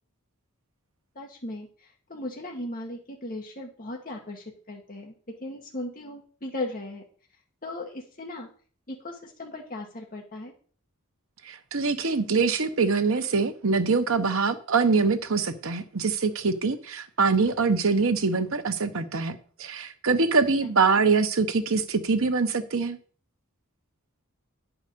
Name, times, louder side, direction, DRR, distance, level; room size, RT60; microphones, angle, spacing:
voice 1, 1.1-5.1 5.4-7.0 7.6-8.5 8.9-10.5 20.6-20.7, left 2 dB, 40° left, 1 dB, 1.4 m, -37 dB
voice 2, 11.5-23.0, right 4 dB, 70° right, 9 dB, 0.9 m, -24 dB
9.6 x 4.9 x 6.7 m, 0.44 s
head